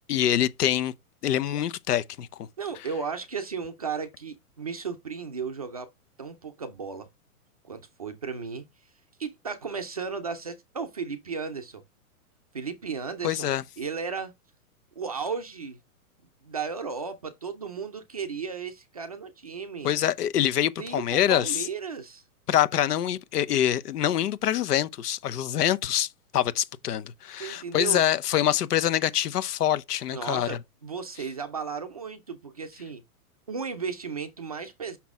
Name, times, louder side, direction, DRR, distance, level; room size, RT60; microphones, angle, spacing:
voice 1, 0.1-0.9 1.2-2.5 13.2-13.6 19.8-21.6 22.5-30.6, left 11 dB, 90° left, 0.9 m, -25 dB
voice 2, 2.6-5.9 6.2-7.1 7.6-8.6 9.2-11.8 12.5-14.3 15.0-15.8 16.4-19.9 20.8-22.2 27.4-28.0 30.1-33.0 33.5-35.0, right 5 dB, 25° right, 0.4 m, -35 dB
6.0 x 5.9 x 3.5 m
hypercardioid pair, 175°, 45 cm